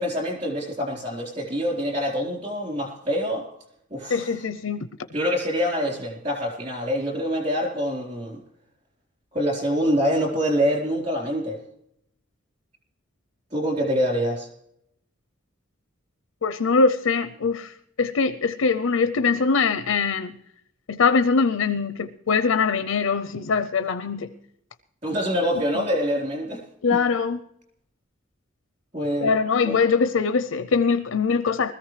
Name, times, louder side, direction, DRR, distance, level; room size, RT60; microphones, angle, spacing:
voice 1, 0.0-3.5 3.9-4.4 5.1-8.4 9.3-11.6 13.5-14.5 25.0-26.6 26.9-27.0 28.9-29.3 29.6-29.8, equal, 35° right, 4.0 m, -25 dB
voice 2, 4.1-4.9 16.4-20.3 20.9-24.3 25.7-25.8 26.8-27.4 29.2-31.7, left 5 dB, 90° left, 0.6 m, -22 dB
20.5 x 14.5 x 3.3 m
head